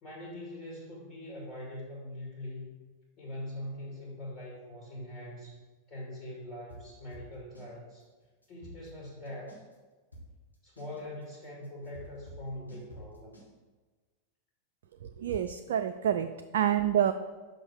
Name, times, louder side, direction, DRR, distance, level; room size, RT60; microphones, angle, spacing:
voice 1, 0.0-2.7 3.2-5.6 5.9-8.1 8.5-9.6 10.6-13.4, left 1 dB, 35° left, -3 dB, 2.5 m, -42 dB
sound 1, 6.7-7.7 8.0-8.1 8.4-9.7 10.1-13.5, equal, 85° left, 1.7 m, -49 dB
voice 2, 15.0-17.1, right 10 dB, 60° right, 7 dB, 0.3 m, -28 dB
6.2 x 5.3 x 6.3 m, 1.3 s
figure-of-eight pair, 90°, 0 cm